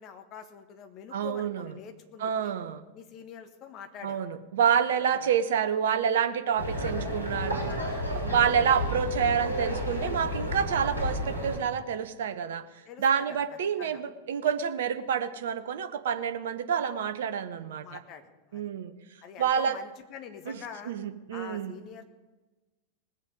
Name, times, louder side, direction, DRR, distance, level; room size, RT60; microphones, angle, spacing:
voice 1, 0.0-2.5 2.9-4.2 5.1-5.3 7.4-8.2 12.8-13.2 13.8-14.0 17.8-18.7 19.2-20.9 21.3-22.0, left 8 dB, 35° left, 7 dB, 1.4 m, -45 dB
voice 2, 1.1-1.7 2.2-2.8 4.0-7.8 8.1-12.6 13.0-18.0 18.5-18.9 19.4-19.8 20.5-20.6 20.9-21.7, right 7 dB, 60° right, 10 dB, 0.8 m, -28 dB
sound 1, 6.6-11.6, equal, 90° left, 2.6 m, -31 dB
19.5 x 7.3 x 5.3 m, 1.2 s
figure-of-eight pair, 90°, 0 cm